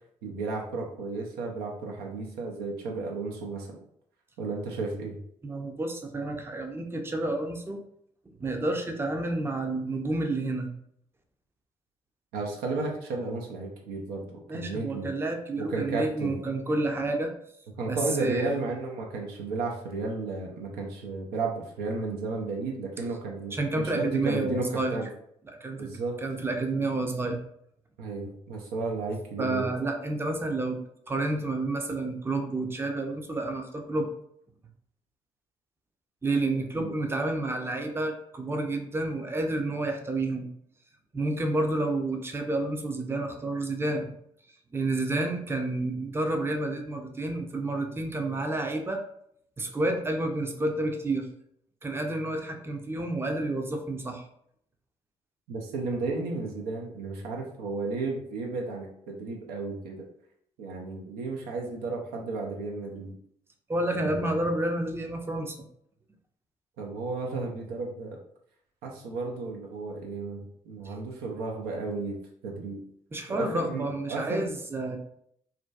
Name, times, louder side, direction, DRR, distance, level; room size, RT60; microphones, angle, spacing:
voice 1, 0.2-3.8 4.4-5.2 12.3-15.1 15.6-16.4 17.8-23.6 23.9-25.1 25.8-26.1 28.0-29.6 36.7-36.9 55.5-60.1 60.6-63.1 63.9-64.5 66.8-68.2 68.8-72.8 73.3-74.5, right 3 dB, 80° right, 0 dB, 0.5 m, -33 dB
voice 2, 5.4-7.8 8.4-10.7 14.5-17.3 17.9-18.5 23.5-25.0 25.5-25.9 26.2-27.4 29.4-34.1 36.2-40.5 41.1-44.1 44.7-49.0 49.6-51.3 51.8-54.2 63.7-65.6 73.1-75.0, right 2 dB, 15° right, 4 dB, 0.5 m, -30 dB
2.5 x 2.2 x 2.3 m, 0.69 s
hypercardioid pair, 45°, 16 cm